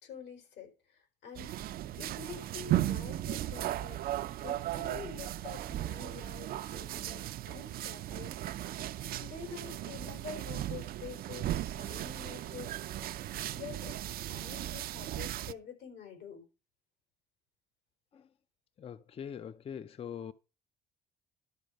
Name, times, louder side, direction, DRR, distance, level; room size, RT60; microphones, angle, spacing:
voice 1, 0.0-8.7 9.0-13.1 13.5-14.0 14.3-16.4, left 6 dB, 85° left, 4.1 m, -48 dB
sound 1, 1.3-15.5, right 13 dB, 60° right, 0.6 m, -36 dB
voice 2, 18.8-20.3, left 8 dB, 35° left, 0.5 m, -42 dB
12.0 x 4.6 x 6.4 m
cardioid pair, 110°, 17 cm